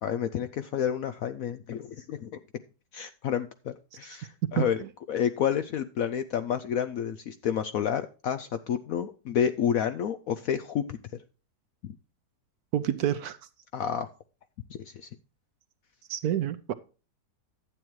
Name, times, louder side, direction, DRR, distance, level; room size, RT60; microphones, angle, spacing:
voice 1, 0.0-2.3 2.9-4.8 5.1-11.2 13.7-14.1 14.8-15.1, left 8 dB, 70° left, 0.8 m, -30 dB
voice 2, 12.7-13.4 16.1-16.7, right 10 dB, 70° right, 1.0 m, -27 dB
11.5 x 8.7 x 3.1 m
omnidirectional pair, 1.9 m